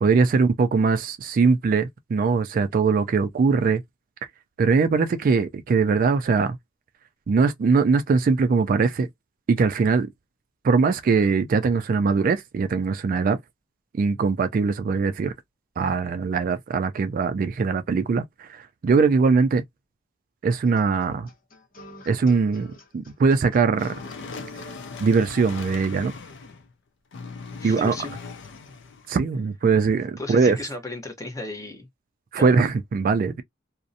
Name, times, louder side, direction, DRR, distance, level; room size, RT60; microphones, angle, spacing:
voice 1, 0.0-3.8 4.6-6.6 7.3-9.1 9.5-10.1 10.6-13.4 14.0-15.3 15.8-19.6 20.4-21.3 22.1-23.9 25.0-26.1 27.6-27.9 29.1-30.6 32.3-33.4, right 4 dB, 45° right, 0.3 m, -21 dB
sound 1, 20.6-24.9, right 1 dB, 45° left, 0.8 m, -46 dB
sound 2, 23.8-26.7 27.1-29.1, left 4 dB, 60° left, 0.4 m, -39 dB
voice 2, 27.6-28.1 30.2-31.9 32.4-32.6, left 2 dB, 15° left, 0.6 m, -34 dB
2.5 x 2.0 x 2.5 m
head